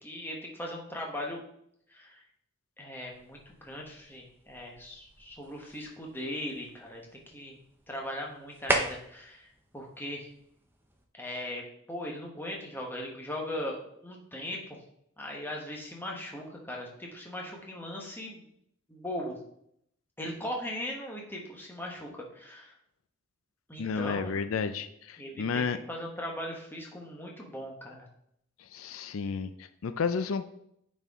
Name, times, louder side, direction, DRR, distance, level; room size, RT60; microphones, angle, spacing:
voice 1, 0.0-1.4 1.9-2.2 2.8-7.6 7.9-9.5 9.7-10.3 11.2-13.8 14.0-14.8 15.2-18.4 18.9-19.4 20.2-22.7 23.7-24.4 25.2-28.1, left 1 dB, 10° left, -1 dB, 1.1 m, -39 dB
sound 1, 3.1-11.1, right 1 dB, 10° right, 0.6 m, -39 dB
voice 2, 23.8-25.8 28.6-30.4, left 5 dB, 85° left, 11 dB, 0.4 m, -32 dB
8.9 x 4.3 x 3.6 m, 0.73 s
head